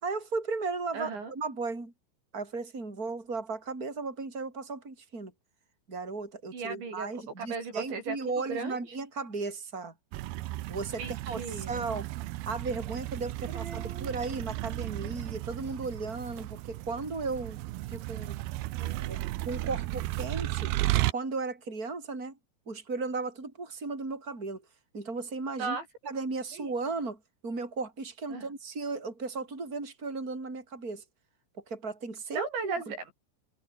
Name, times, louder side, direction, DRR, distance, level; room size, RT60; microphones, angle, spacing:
voice 1, 0.0-1.9 2.3-5.3 5.9-9.9 10.7-12.1 12.4-17.6 17.9-18.4 19.1-19.2 19.4-20.7 21.1-22.4 22.7-24.6 24.9-25.8 26.0-31.0 31.7-32.7, right 3 dB, 20° right, 6.8 m, -35 dB
voice 2, 0.9-1.3 6.5-7.1 7.4-8.8 11.0-11.8 13.5-14.3 18.8-19.4 25.6-25.8 26.5-26.7 28.3-28.5 32.3-33.1, right 4 dB, 70° right, 9.3 m, -37 dB
sound 1, 10.1-21.1, right 17 dB, 90° right, 2.2 m, -34 dB
omnidirectional pair, 5.4 m